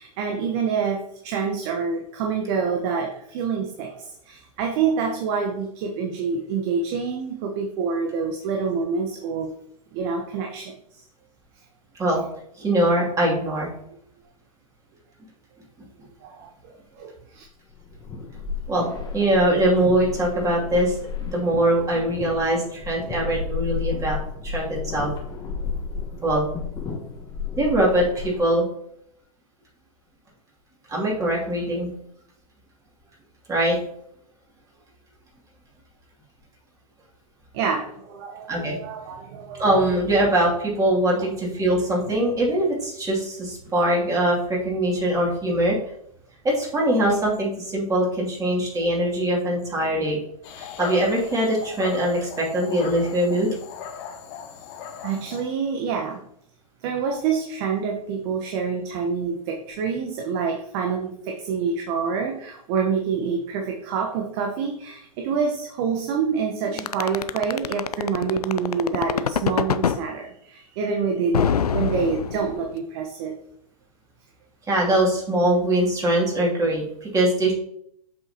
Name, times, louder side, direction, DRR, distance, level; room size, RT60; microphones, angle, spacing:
voice 1, 0.0-9.5 9.9-11.0 16.2-17.4 37.5-39.6 41.2-41.3 55.0-56.2 56.8-73.4, right 5 dB, 45° right, 2 dB, 1.1 m, -27 dB
voice 2, 12.6-13.7 18.7-18.9 19.1-24.2 24.4-25.1 26.2-26.4 27.6-28.6 30.9-31.9 33.5-33.8 38.5-38.8 39.6-45.8 46.4-50.2 50.6-53.6 66.8-66.9 69.1-69.2 74.7-77.5, right 1 dB, 15° right, -3 dB, 2.6 m, -22 dB
sound 1, 17.7-28.5, left 5 dB, 20° left, 1.3 m, -32 dB
Dog, 50.4-55.4, left 7 dB, 45° left, 1.2 m, -38 dB
sound 2, 66.8-70.0 71.3-72.7, left 7 dB, 90° left, 0.5 m, -23 dB
7.6 x 6.0 x 2.9 m, 0.71 s
hypercardioid pair, 110°, 19 cm